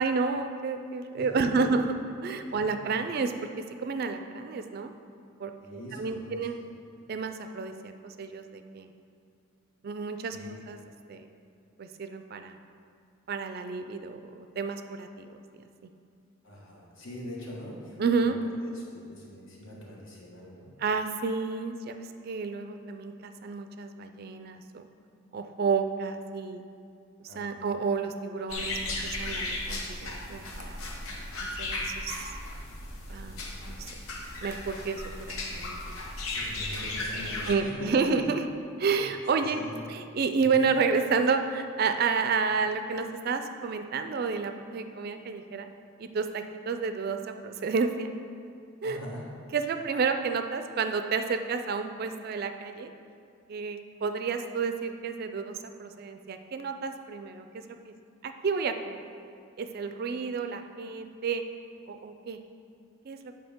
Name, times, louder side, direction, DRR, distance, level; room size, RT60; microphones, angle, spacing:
voice 1, 0.0-1.8 2.2-4.9 5.4-6.6 7.1-8.9 9.8-10.4 10.7-10.8 11.1-11.3 11.8-12.6 13.3-15.3 18.0-18.4 20.8-24.9 25.3-26.6 27.2-28.8 29.0-30.8 31.6-32.3 33.1-33.9 34.4-36.0 37.5-38.4 38.8-39.6 39.9-45.7 46.0-48.1 48.8-49.0 49.5-52.9 53.5-57.5 57.9-58.0 58.2-59.0 59.6-61.4 61.9-62.4 63.1-63.2, right 5 dB, 45° right, 8 dB, 0.3 m, -30 dB
voice 2, 1.1-1.6 2.5-2.6 5.6-6.7 10.3-10.5 16.4-17.9 18.2-18.3 18.7-20.7 27.3-27.6 36.3-38.0 38.9-39.0 39.6-39.8 40.6-40.7 48.8-49.2, equal, 65° left, -3 dB, 1.5 m, -42 dB
sound 1, 28.5-37.5, left 2 dB, 90° left, 1.0 m, -36 dB
7.7 x 5.4 x 3.6 m, 2.5 s
head